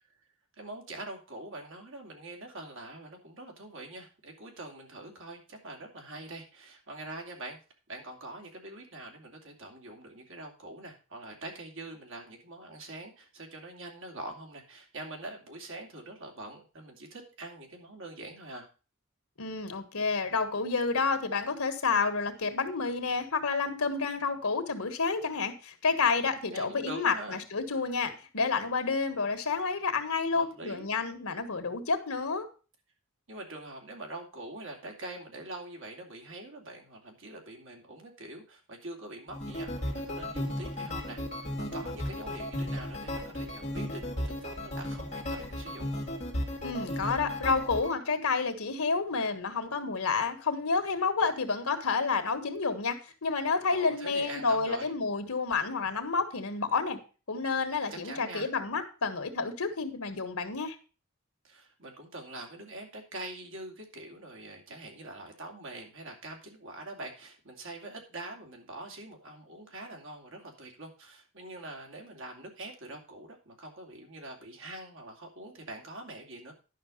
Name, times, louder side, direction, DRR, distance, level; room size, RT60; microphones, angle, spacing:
voice 1, 0.6-7.6 7.9-18.7 26.5-27.4 30.3-30.9 33.3-46.0 53.7-54.9 57.9-58.5 61.4-76.5, right 2 dB, 65° right, 2 dB, 2.7 m, -44 dB
voice 2, 19.4-32.4 46.6-57.0 57.3-60.8, left 4 dB, 85° left, 8 dB, 1.6 m, -30 dB
sound 1, 39.3-47.9, left 1 dB, 35° left, 2.1 m, -35 dB
11.0 x 5.8 x 5.2 m, 0.34 s
head